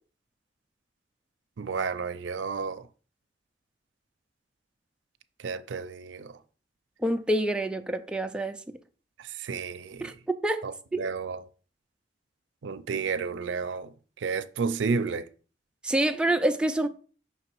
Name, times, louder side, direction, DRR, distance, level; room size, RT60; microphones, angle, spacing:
voice 1, 1.6-2.8 5.4-6.3 9.2-10.1 10.6-10.7 11.0-11.4 12.6-13.9 14.2-15.2, right 5 dB, 85° right, 0.5 m, -31 dB
voice 2, 7.0-8.6 10.0-10.1 10.4-10.7 10.9-11.1 15.8-16.9, right 1 dB, 5° right, 0.3 m, -26 dB
5.7 x 3.9 x 4.5 m
head